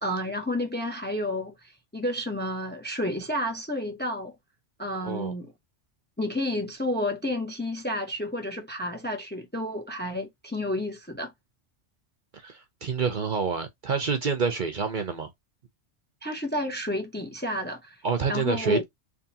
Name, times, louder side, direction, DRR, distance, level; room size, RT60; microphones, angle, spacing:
voice 1, 0.0-1.5 1.9-4.3 4.8-5.5 6.2-11.3 16.2-17.9 18.3-18.8, left 1 dB, 10° left, 0.6 m, -30 dB
voice 2, 12.3-15.3 18.0-18.8, right 5 dB, 50° right, 0.8 m, -28 dB
3.6 x 3.3 x 2.8 m
omnidirectional pair, 1.2 m